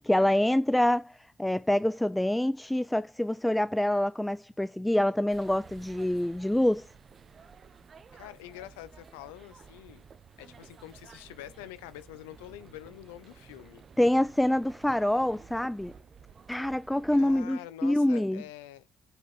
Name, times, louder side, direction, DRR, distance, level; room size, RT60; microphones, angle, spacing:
voice 1, 0.0-6.9 14.0-15.9 16.5-18.4, left 1 dB, 10° left, 0.4 m, -26 dB
sound 1, 5.3-17.5, right 6 dB, 45° right, 1.1 m, -53 dB
voice 2, 8.1-10.0 10.4-13.8 17.1-18.9, left 14 dB, 75° left, 0.6 m, -46 dB
9.4 x 5.0 x 5.4 m
figure-of-eight pair, 45°, 0 cm